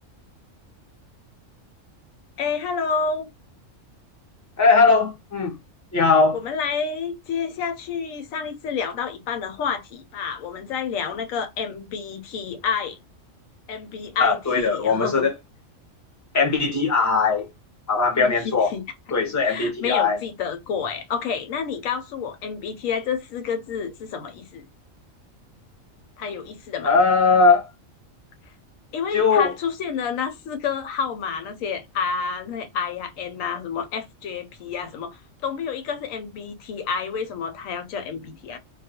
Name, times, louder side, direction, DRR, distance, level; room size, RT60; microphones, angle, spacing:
voice 1, 2.4-3.3 6.3-13.0 13.7-15.3 18.1-18.8 19.4-24.7 26.2-26.9 28.9-38.6, left 6 dB, 85° left, 1.0 m, -29 dB
voice 2, 4.6-5.5 5.9-6.4 14.2-15.3 16.3-17.5 17.9-18.7 19.1-20.2 26.8-27.7 29.1-29.5, left 4 dB, 20° left, 0.5 m, -19 dB
2.3 x 2.2 x 2.7 m
omnidirectional pair, 1.4 m